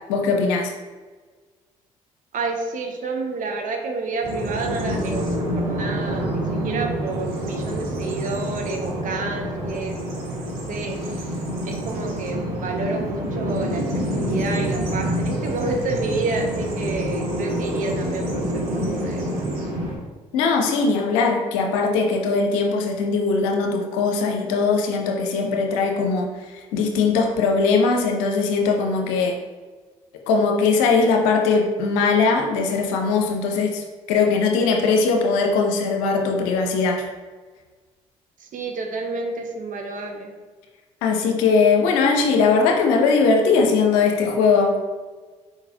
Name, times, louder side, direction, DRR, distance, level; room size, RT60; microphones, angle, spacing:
voice 1, 0.1-0.7 20.3-26.3 26.7-29.4 30.3-37.1 41.0-44.8, left 4 dB, 75° left, 2 dB, 0.6 m, -20 dB
voice 2, 2.3-10.3 10.7-11.0 11.6-19.5 38.5-40.3, right 3 dB, 50° right, 3 dB, 0.8 m, -29 dB
Bird vocalization bird call bird song, 4.2-20.0, equal, 70° right, 1.2 m, -27 dB
4.6 x 3.8 x 2.7 m, 1.4 s
hypercardioid pair, 50°, 17 cm